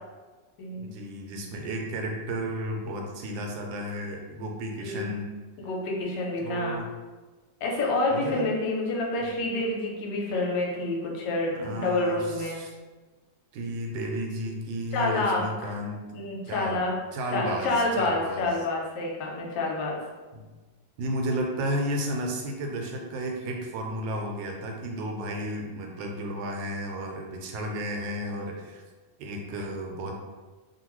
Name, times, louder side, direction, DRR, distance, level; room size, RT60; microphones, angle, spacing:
voice 1, 0.8-5.3 6.4-6.9 8.1-8.4 11.6-12.8 13.5-16.1 16.5-16.8 17.1-18.6 20.3-20.4 21.0-28.8 29.2-30.1, right 1 dB, 85° right, 1 dB, 1.3 m, -33 dB
voice 2, 5.6-6.8 7.6-12.6 14.9-15.7 16.1-16.9 17.3-20.0, left 2 dB, 85° left, -1 dB, 1.4 m, -28 dB
2.8 x 2.6 x 3.0 m, 1.3 s
omnidirectional pair, 2.0 m